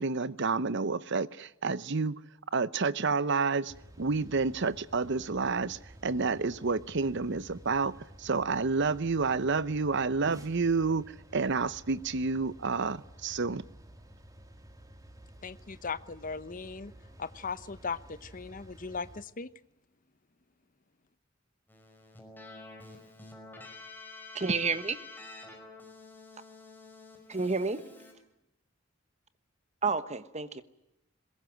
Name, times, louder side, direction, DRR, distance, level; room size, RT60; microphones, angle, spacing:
voice 1, 0.0-2.2 2.5-11.0 11.3-13.6, right 4 dB, 60° right, 0.8 m, -29 dB
sound 1, 3.7-19.2, equal, 15° right, 2.4 m, -53 dB
voice 2, 15.4-16.9 17.2-19.5, left 5 dB, 40° left, 0.9 m, -38 dB
Keyboard (musical), 21.7-28.1, left 3 dB, 10° left, 5.4 m, -49 dB
voice 3, 24.3-25.0 27.3-27.8 29.8-30.6, right 4 dB, 35° right, 1.2 m, -30 dB
22.0 x 21.5 x 9.3 m
head